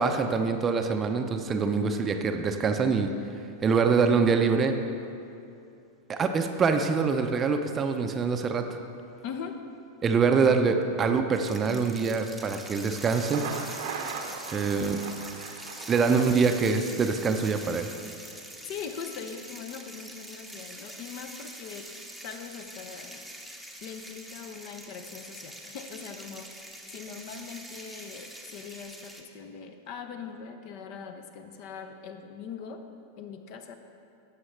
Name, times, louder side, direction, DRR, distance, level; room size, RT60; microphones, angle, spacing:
voice 1, 0.0-3.1 3.6-4.7 6.1-8.7 10.0-13.5 14.5-15.0 15.9-17.9, right 5 dB, 25° right, 6 dB, 0.6 m, -24 dB
voice 2, 9.2-9.6 18.6-21.9 22.2-23.3 23.8-32.8 33.2-33.8, left 6 dB, 45° left, 7 dB, 0.8 m, -41 dB
sound 1, 11.3-29.2, right 1 dB, ahead, 0.9 m, -44 dB
Thunder, 13.0-17.0, right 5 dB, 55° right, 0.8 m, -39 dB
17.0 x 7.2 x 3.3 m, 2.7 s
figure-of-eight pair, 90°, 0 cm